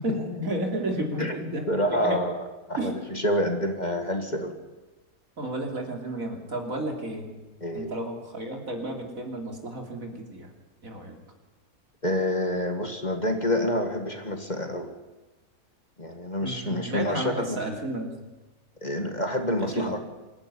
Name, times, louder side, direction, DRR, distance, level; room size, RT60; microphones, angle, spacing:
voice 1, 0.0-2.2 2.8-3.0 5.4-7.3 7.7-10.5 10.8-11.2 16.4-18.1 19.6-20.0, right 1 dB, 65° right, 3 dB, 3.5 m, -32 dB
voice 2, 1.7-4.6 7.6-7.9 12.0-14.9 16.0-17.6 18.8-20.0, left 1 dB, 30° left, 5 dB, 2.1 m, -28 dB
25.5 x 14.0 x 9.9 m, 1.2 s
omnidirectional pair, 1.5 m